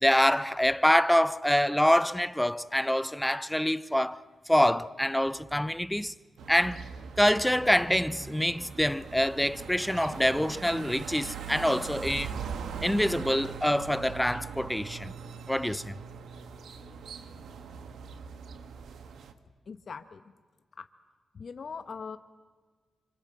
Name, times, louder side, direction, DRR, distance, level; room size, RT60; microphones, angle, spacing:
voice 1, 0.0-4.2 4.5-6.1 6.5-6.8 7.2-12.3 12.8-15.1 15.5-15.9, equal, 5° left, 0.8 m, -25 dB
sound 1, 6.4-19.3, right 6 dB, 80° right, 1.6 m, -41 dB
voice 2, 19.7-20.3 20.7-20.9 21.3-22.2, left 5 dB, 55° left, 1.3 m, -41 dB
26.0 x 25.0 x 7.8 m
cardioid pair, 75°, 0 cm